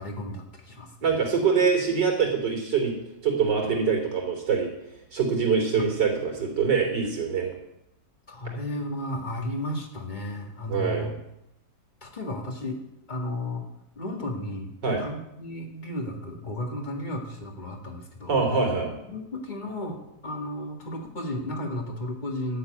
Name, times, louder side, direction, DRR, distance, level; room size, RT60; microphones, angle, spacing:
voice 1, 0.0-1.2 5.8-5.9 8.3-11.2 12.0-12.8 13.1-13.6 14.0-18.4 19.1-22.6, left 1 dB, 25° left, 2 dB, 2.1 m, -34 dB
voice 2, 1.0-2.9 3.2-4.7 5.1-7.5 10.7-11.1 14.8-15.0 18.3-18.9, right 5 dB, 80° right, 2 dB, 3.9 m, -24 dB
12.0 x 7.2 x 9.1 m, 0.84 s
omnidirectional pair, 1.9 m